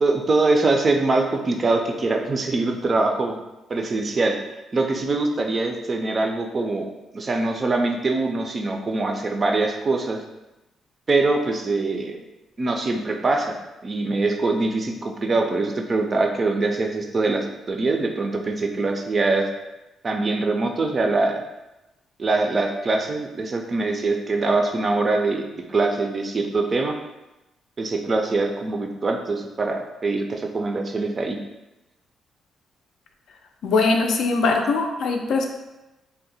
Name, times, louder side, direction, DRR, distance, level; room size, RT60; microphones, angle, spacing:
voice 1, 0.0-3.4 3.7-4.4 4.7-10.2 11.1-12.2 12.6-13.6 13.8-19.5 20.0-21.4 22.2-26.9 27.8-31.4, right 3 dB, 35° right, 3 dB, 0.4 m, -23 dB
voice 2, 33.6-35.5, left 3 dB, 75° left, 3 dB, 0.4 m, -21 dB
2.7 x 2.1 x 4.0 m, 1.0 s
cardioid pair, 120°, 0 cm